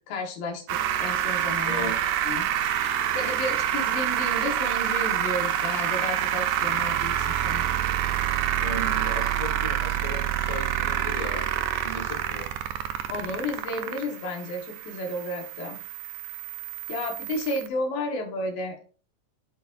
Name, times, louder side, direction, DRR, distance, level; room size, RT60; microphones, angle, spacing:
voice 1, 0.1-0.6 1.0-1.9 2.2-2.5 2.8-7.6 13.1-15.8 16.9-18.8, left 1 dB, 85° left, 3.0 m, -32 dB
sound 1, 0.7-17.7, right 11 dB, 80° right, 2.4 m, -27 dB
voice 2, 1.6-2.1 8.6-12.5, left 1 dB, 45° left, 2.0 m, -36 dB
13.0 x 4.5 x 2.5 m
omnidirectional pair, 3.9 m